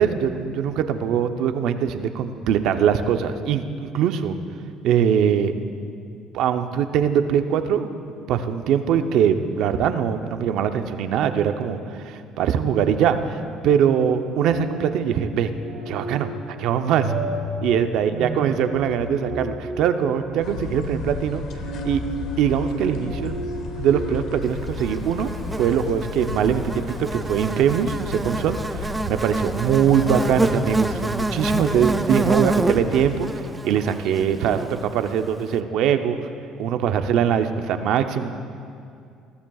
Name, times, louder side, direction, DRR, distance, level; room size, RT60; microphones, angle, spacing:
voice 1, 0.0-4.4 4.8-5.5 6.3-7.9 8.3-13.4 13.6-15.5 15.9-17.1 17.6-21.4 21.8-22.0 22.4-23.4 23.8-25.3 25.6-36.3 36.6-38.3, right 8 dB, 65° right, 8 dB, 0.6 m, -22 dB
sound 1, 14.4-24.7, right 1 dB, 85° right, 2.6 m, -33 dB
sound 2, 20.4-33.2, left 4 dB, 60° left, 1.0 m, -34 dB
Buzz, 24.8-35.2, right 2 dB, 10° right, 0.3 m, -27 dB
21.0 x 14.0 x 2.4 m, 2.4 s
cardioid pair, 140°, 0 cm